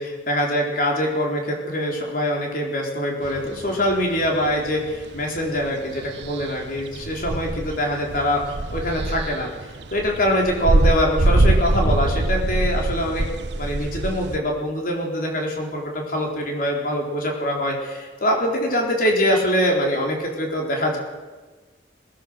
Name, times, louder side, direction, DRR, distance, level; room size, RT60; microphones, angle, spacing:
voice 1, 0.0-8.4 8.7-9.5 9.9-13.3 13.5-21.0, equal, 50° left, 0 dB, 4.4 m, -24 dB
sound 1, 3.2-14.4, right 2 dB, 65° right, 0.9 m, -24 dB
24.0 x 19.0 x 6.7 m, 1.3 s
head